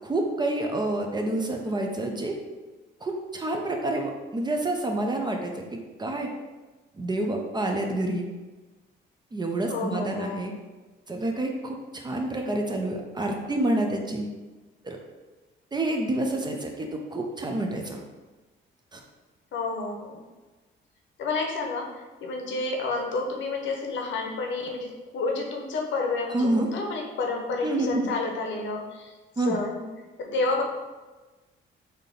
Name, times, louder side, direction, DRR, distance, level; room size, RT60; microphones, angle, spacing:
voice 1, 0.0-2.4 3.0-6.3 7.0-8.3 9.3-10.5 11.1-14.3 14.8-15.0 15.7-18.0 18.9-19.0 26.3-26.7 27.6-28.1 29.4-29.6, right 1 dB, 20° right, 2 dB, 0.5 m, -28 dB
voice 2, 9.7-10.5 19.5-20.2 21.2-29.1 29.4-29.8 30.2-30.6, left 3 dB, 70° left, 1 dB, 0.7 m, -30 dB
3.4 x 2.8 x 3.8 m, 1.2 s
cardioid pair, 90°, 20 cm